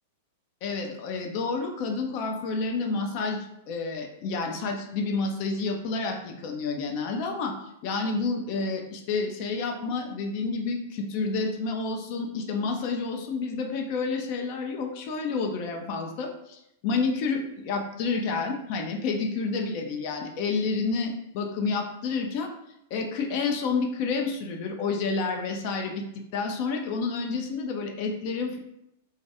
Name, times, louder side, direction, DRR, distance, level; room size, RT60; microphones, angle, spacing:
voice 1, 0.6-7.5 7.8-22.5 22.9-26.0 26.3-28.6, left 4 dB, 50° left, 3 dB, 0.4 m, -29 dB
2.3 x 2.2 x 2.8 m, 0.81 s
figure-of-eight pair, 100°, 0 cm